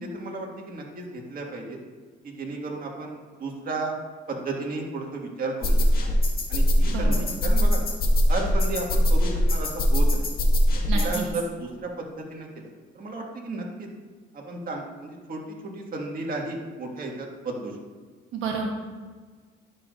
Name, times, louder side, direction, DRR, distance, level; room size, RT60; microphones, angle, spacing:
voice 1, 0.0-1.8 2.2-3.9 4.3-6.1 6.5-7.9 8.3-10.3 10.7-12.7 12.9-13.9 14.3-17.7, right 2 dB, 45° right, 0 dB, 1.8 m, -34 dB
sound 1, 5.6-11.3, equal, 50° left, 1.7 m, -21 dB
voice 2, 6.9-7.2 10.9-11.3 18.3-18.7, right 5 dB, 85° right, 0 dB, 1.2 m, -30 dB
11.0 x 6.6 x 2.5 m, 1.5 s
cardioid pair, 90°, 20 cm